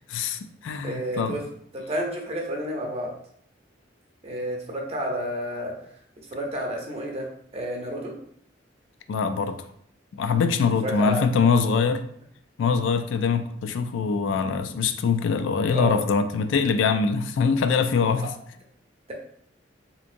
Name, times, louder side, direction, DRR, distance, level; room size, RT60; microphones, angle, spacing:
voice 1, 0.1-1.4 9.1-9.7 10.1-12.0 12.6-18.3, left 5 dB, 80° left, 9 dB, 0.3 m, -23 dB
voice 2, 0.8-1.4 1.7-3.1 4.2-5.7 6.3-7.3 7.5-8.1 10.8-11.2 15.7-16.0, equal, 35° right, 0 dB, 0.7 m, -30 dB
3.5 x 2.8 x 2.5 m, 0.67 s
head